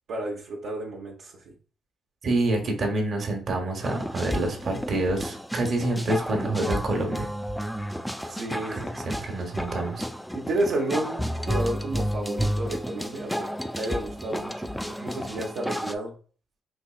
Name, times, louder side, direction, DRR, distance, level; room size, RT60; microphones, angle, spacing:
voice 1, 0.1-1.3 8.3-8.9 10.3-13.5 13.8-16.1, right 2 dB, 70° right, -4 dB, 0.7 m, -31 dB
voice 2, 2.2-7.3 8.9-10.0, right 2 dB, 50° right, 2 dB, 1.0 m, -27 dB
sound 1, 3.8-15.9, equal, ahead, 0.3 m, -32 dB
4.4 x 2.7 x 2.4 m, 0.40 s
cardioid pair, 90°, 0 cm